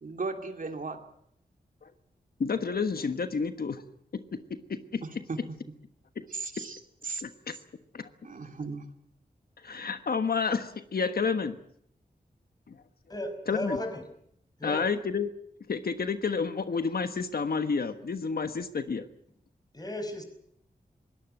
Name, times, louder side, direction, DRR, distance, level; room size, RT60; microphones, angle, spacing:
voice 1, 0.0-1.0 5.0-5.4 6.3-7.2 8.2-8.8, right 4 dB, 60° right, 5 dB, 2.8 m, -36 dB
voice 2, 2.4-3.8 4.7-5.0 7.2-7.5 7.9-8.1 9.6-11.6 12.7-12.8 13.5-13.8 14.6-15.3 15.7-19.1, left 5 dB, 75° left, 9 dB, 1.4 m, -30 dB
voice 3, 13.1-14.0 14.6-14.9 19.7-20.2, left 1 dB, 25° left, 7 dB, 5.2 m, -34 dB
22.0 x 18.0 x 9.0 m, 0.70 s
wide cardioid pair, 90°, 16 cm